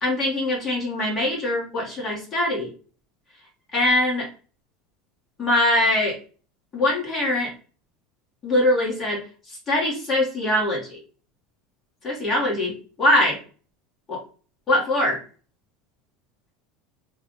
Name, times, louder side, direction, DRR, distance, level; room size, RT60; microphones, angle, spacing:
voice 1, 0.0-2.7 3.7-4.3 5.4-6.2 6.7-7.5 8.4-9.2 9.5-11.0 12.0-13.4 14.1-14.2 14.7-15.2, left 1 dB, 30° left, -4 dB, 1.6 m, -22 dB
3.3 x 2.5 x 3.8 m, 0.39 s
supercardioid pair, 125°, 0 cm